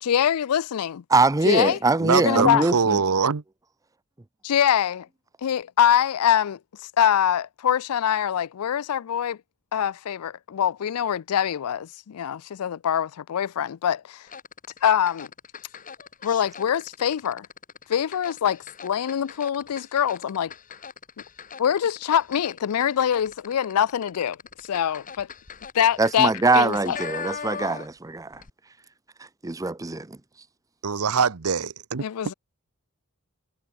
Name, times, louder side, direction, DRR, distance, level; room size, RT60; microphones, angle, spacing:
voice 1, 0.0-1.0 1.4-1.8 2.1-2.7 4.4-5.1 5.4-6.6 7.0-9.4 9.7-14.3 14.8-15.3 16.2-17.5 17.9-20.5 21.6-25.3 25.7-27.0 32.0-32.3, left 9 dB, 80° left, 0.4 m, -24 dB
voice 2, 1.1-3.0 26.0-28.4 29.4-30.2, right 3 dB, 15° right, 0.5 m, -22 dB
voice 3, 2.0-3.4 30.8-32.0, right 5 dB, 85° right, 0.9 m, -23 dB
sound 1, 14.3-28.1 28.3-28.5, left 6 dB, 35° left, 1.4 m, -40 dB
head